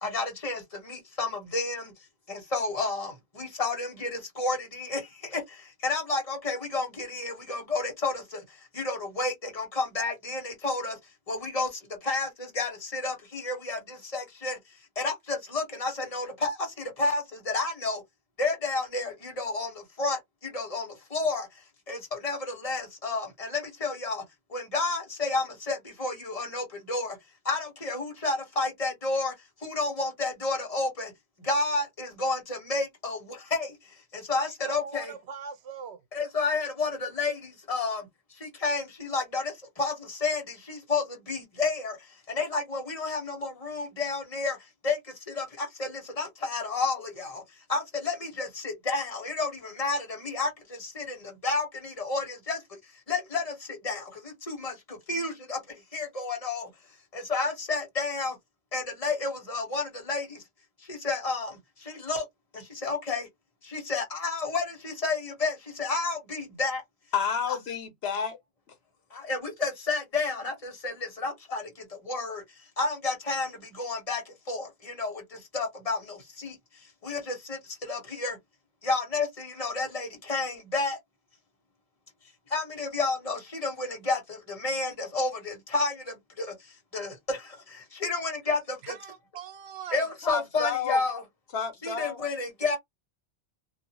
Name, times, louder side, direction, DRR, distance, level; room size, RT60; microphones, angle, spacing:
voice 1, 0.0-0.6 0.9-1.8 2.3-3.1 3.4-4.1 4.4-5.0 5.3-5.4 5.8-8.1 8.8-10.9 11.3-11.7 12.1-12.3 12.5-14.6 15.0-16.5 17.0-18.0 18.4-19.7 20.0-20.2 20.5-20.8 21.1-21.4 21.9-24.2 24.5-27.1 27.5-29.3 29.6-31.1 31.5-33.2 33.5-33.7 34.3-35.1 36.1-37.4 37.7-38.0 38.6-39.4 39.8-40.4 40.7-41.9 42.3-44.5 44.8-45.0 45.4-45.5 45.8-45.9 46.2-47.3 47.7-50.5 51.0-51.2 51.4-52.6 53.1-53.4 53.8-54.0 54.5-54.7 55.1-55.6 55.9-56.7 57.3-58.3 58.7-60.2 61.0-61.5 61.9-62.2 62.8-63.2 63.7-65.5 65.8-66.8 67.5-67.6 69.3-71.6 72.1-72.4 72.8-73.5 73.8-74.2 74.5-74.7 75.0-75.1 75.5-76.0 76.4-76.5 77.0-77.6 77.9-78.3 78.8-81.0 82.5-84.2 84.6-85.9 86.4-86.5 86.9-87.4 88.0-88.6 89.9-91.2 91.8-92.8, left 3 dB, 35° left, 1.4 m, -30 dB
voice 2, 34.6-36.0 88.8-90.0, right 6 dB, 80° right, 0.9 m, -41 dB
voice 3, 67.1-68.4 90.2-91.0 91.5-92.2, left 6 dB, 70° left, 1.1 m, -30 dB
2.7 x 2.7 x 2.9 m
omnidirectional pair, 1.1 m